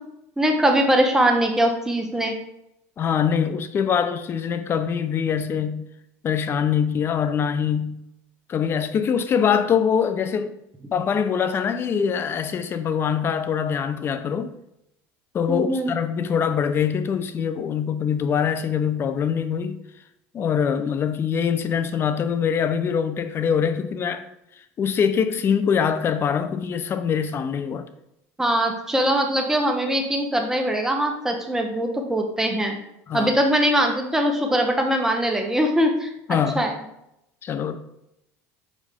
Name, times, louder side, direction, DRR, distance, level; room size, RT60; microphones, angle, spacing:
voice 1, 0.4-2.4 15.5-15.9 28.4-32.8 33.1-36.1 36.5-36.7, right 1 dB, 5° right, 1.1 m, -21 dB
voice 2, 3.0-5.9 6.2-8.0 8.5-10.5 10.9-14.5 15.3-19.8 20.3-24.2 24.8-27.9 33.1-33.3 36.3-36.7 37.4-37.8, left 7 dB, 35° left, 0.6 m, -23 dB
5.3 x 5.1 x 3.6 m
supercardioid pair, 105°, 7 cm